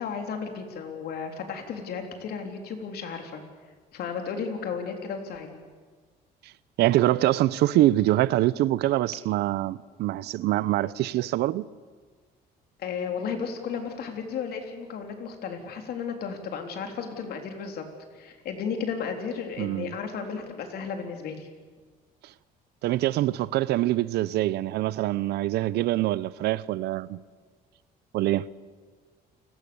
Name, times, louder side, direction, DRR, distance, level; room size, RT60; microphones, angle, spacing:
voice 1, 0.0-3.4 3.9-5.6 12.8-17.8 18.1-21.5, left 6 dB, 70° left, 3.7 m, -34 dB
voice 2, 6.8-11.7 19.6-19.9 22.8-27.2 28.1-28.5, right 15 dB, 75° right, 0.7 m, -24 dB
29.5 x 18.5 x 7.1 m
cardioid pair, 110°, 17 cm